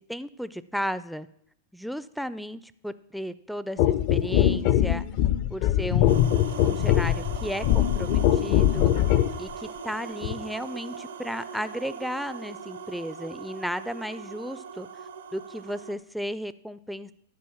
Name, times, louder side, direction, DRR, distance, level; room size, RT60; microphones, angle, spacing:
voice 1, 0.1-1.3 1.7-5.1 5.5-6.2 6.6-8.9 9.4-14.9 15.3-17.1, equal, ahead, 14 dB, 0.4 m, -34 dB
sound 1, 3.8-9.4 10.2-10.4, left 12 dB, 50° left, 0.5 m, -22 dB
sound 2, 6.1-15.9, right 6 dB, 90° right, 0.9 m, -40 dB
10.5 x 4.3 x 7.1 m, 0.72 s
hypercardioid pair, 120°, 0 cm